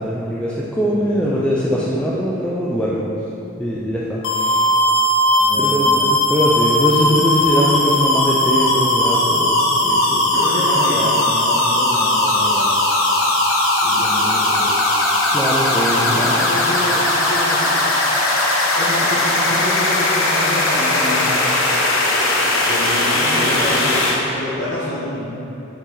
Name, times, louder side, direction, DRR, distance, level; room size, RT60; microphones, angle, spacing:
voice 1, 0.0-3.0 3.6-4.6 5.6-10.2 15.3-16.3, equal, 5° left, -6 dB, 0.5 m, -21 dB
voice 2, 0.8-1.5 5.4-6.1 10.1-12.8 13.8-14.7 15.7-17.8 18.8-21.7 22.6-25.3, left 1 dB, 60° left, -10 dB, 1.2 m, -27 dB
sound 1, 4.2-24.1, left 1 dB, 80° left, 1.1 m, -18 dB
5.8 x 5.7 x 3.9 m, 3.0 s
head